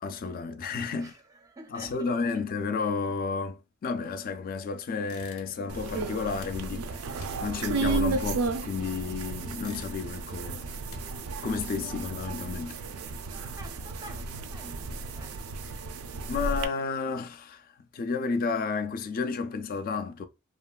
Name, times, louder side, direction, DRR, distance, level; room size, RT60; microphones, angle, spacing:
voice 1, 0.0-1.1 1.7-10.6 11.4-12.8 16.3-17.7 17.9-20.3, left 4 dB, 45° left, 0.3 m, -32 dB
voice 2, 0.9-2.2 13.6-15.5, right 2 dB, 15° right, 0.4 m, -48 dB
sound 1, 5.0-5.8 6.1-9.0 9.4-10.3 10.7-12.0, left 3 dB, 90° left, 0.6 m, -51 dB
sound 2, 5.7-16.7, right 3 dB, 80° right, 0.4 m, -33 dB
3.0 x 2.3 x 2.2 m
head